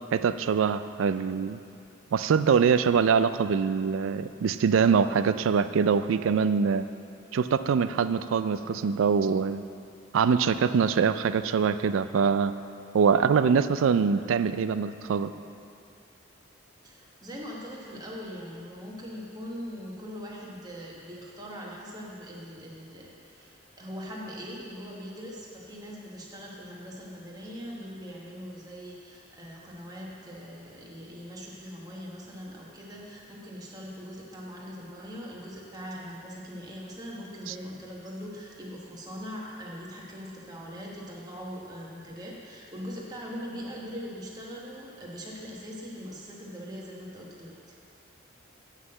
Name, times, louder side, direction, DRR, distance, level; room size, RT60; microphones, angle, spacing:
voice 1, 0.1-1.6 2.1-6.9 7.3-9.6 10.1-12.5 12.9-15.3 37.5-37.6, right 6 dB, 85° right, 13 dB, 0.4 m, -24 dB
voice 2, 16.8-47.7, equal, 20° right, -4 dB, 1.1 m, -41 dB
8.1 x 5.8 x 7.6 m, 2.5 s
head